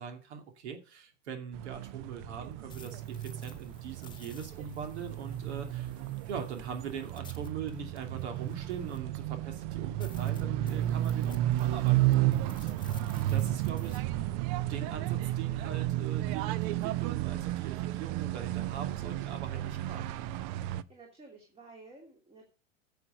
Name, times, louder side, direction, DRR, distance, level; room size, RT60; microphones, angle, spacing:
voice 1, 0.0-5.9 6.3-12.7 13.3-14.3 14.7-20.2, right 7 dB, 60° right, 5 dB, 2.6 m, -42 dB
sound 1, 1.5-20.8, right 14 dB, 35° right, 0.6 m, -32 dB
sound 2, 2.4-9.2 9.6-9.7 10.0-14.0, left 6 dB, 10° left, 1.5 m, -56 dB
voice 2, 10.7-11.0 12.6-13.1 20.7-22.5, right 3 dB, 15° right, 1 dB, 2.8 m, -54 dB
9.8 x 6.8 x 6.5 m, 0.35 s
figure-of-eight pair, 95°, 38 cm